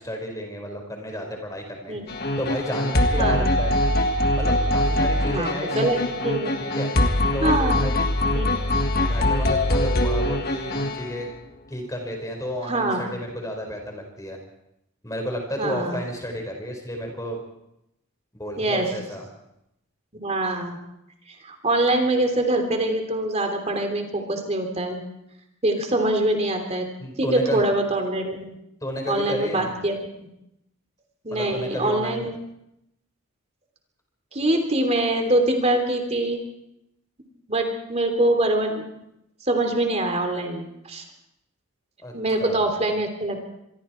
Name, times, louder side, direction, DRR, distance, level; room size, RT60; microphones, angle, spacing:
voice 1, 0.0-2.0 2.4-3.8 4.4-6.1 6.6-6.9 7.3-8.0 9.0-11.3 11.7-14.4 15.0-17.4 18.3-19.2 27.0-27.6 28.8-29.7 31.3-32.2 42.0-42.1 42.4-42.6, equal, 15° left, 2 dB, 5.0 m, -32 dB
sound 1, 2.1-11.2, left 1 dB, 45° left, 1.6 m, -23 dB
voice 2, 5.7-6.5 7.4-7.8 8.3-8.5 12.7-13.0 15.6-16.0 18.6-18.9 20.2-20.8 21.4-25.0 25.6-26.9 27.2-28.5 29.1-30.0 31.2-32.3 34.3-36.4 37.5-38.8 39.4-41.0 42.1-43.5, right 1 dB, 30° right, 5 dB, 3.2 m, -24 dB
26.0 x 22.5 x 4.6 m, 0.83 s
head